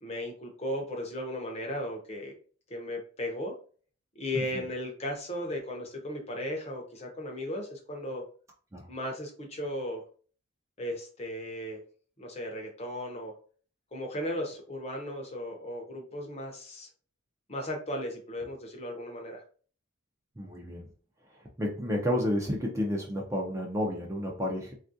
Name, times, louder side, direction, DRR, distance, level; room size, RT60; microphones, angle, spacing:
voice 1, 0.0-2.3 2.7-3.5 4.2-8.2 8.9-10.0 10.8-11.8 12.2-13.3 13.9-16.9 17.5-19.4, left 1 dB, 30° left, 2 dB, 0.6 m, -36 dB
voice 2, 20.4-20.9 21.6-24.7, equal, 15° right, -1 dB, 0.4 m, -31 dB
3.4 x 2.4 x 2.6 m, 0.42 s
head